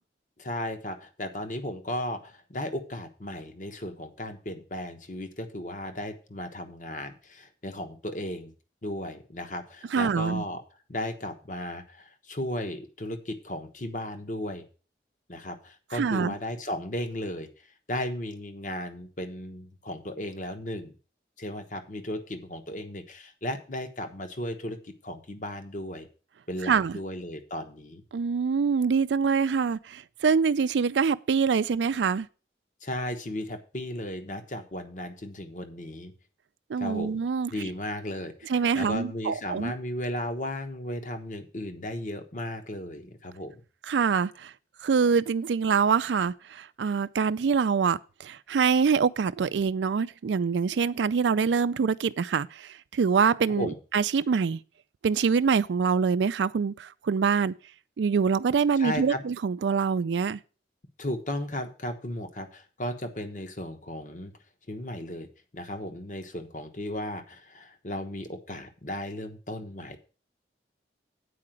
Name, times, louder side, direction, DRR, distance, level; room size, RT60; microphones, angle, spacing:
voice 1, 0.4-8.5 8.8-10.6 10.9-14.6 15.3-20.9 21.4-26.1 26.5-28.0 32.8-36.1 36.8-37.2 37.5-43.5 53.5-53.8 58.7-59.2 61.0-64.3 64.7-65.3 65.5-70.0, left 1 dB, 45° left, 1.1 m, -35 dB
voice 2, 9.9-10.4 15.9-16.3 26.6-27.0 28.1-32.3 36.7-37.7 38.5-39.7 43.9-44.5 44.8-54.6 55.0-57.5 58.0-60.4, right 6 dB, 85° right, 0.4 m, -25 dB
8.5 x 5.0 x 7.5 m
head